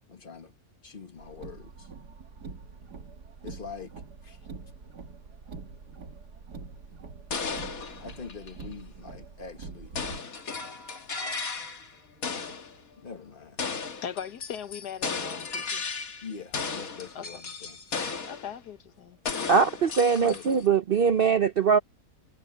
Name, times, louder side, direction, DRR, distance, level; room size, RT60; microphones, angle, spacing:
voice 1, 0.1-0.5 0.8-1.9 3.4-3.9 4.2-4.4 8.0-10.0 13.0-13.6 16.2-18.0 20.0-20.4, left 5 dB, 35° left, 1.6 m, -43 dB
Car, 1.2-10.2, right 4 dB, 90° right, 2.5 m, -45 dB
sound 1, 7.3-8.7 9.9-11.9 12.2-12.7 13.6-16.3 16.5-18.5 19.3-20.7, left 5 dB, 60° left, 2.2 m, -35 dB
voice 2, 14.0-15.8 17.1-17.4 18.2-19.2, left 8 dB, 90° left, 1.7 m, -39 dB
voice 3, 19.5-21.8, right 6 dB, 55° right, 0.6 m, -22 dB
omnidirectional pair, 1.7 m